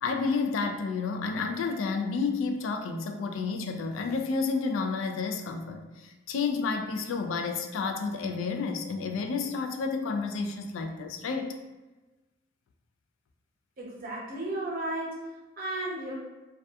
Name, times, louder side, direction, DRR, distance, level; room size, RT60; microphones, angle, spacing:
voice 1, 0.0-11.5, left 4 dB, 85° left, 5 dB, 0.3 m, -30 dB
voice 2, 13.8-16.1, right 1 dB, 45° right, -2 dB, 0.5 m, -34 dB
2.6 x 2.3 x 2.2 m, 1.1 s
head